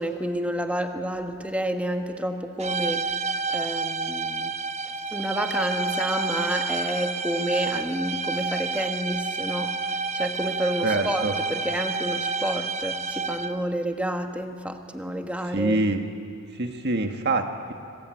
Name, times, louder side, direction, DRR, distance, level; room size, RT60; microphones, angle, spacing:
voice 1, 0.0-4.5 5.1-9.8 10.1-15.8, right 1 dB, 5° right, 5 dB, 1.5 m, -29 dB
sound 1, 2.6-13.7, right 4 dB, 30° right, 0.9 m, -29 dB
voice 2, 10.8-11.3 15.5-16.0 16.5-17.7, right 2 dB, 55° right, 5 dB, 1.7 m, -25 dB
25.5 x 20.5 x 9.3 m, 2.5 s
head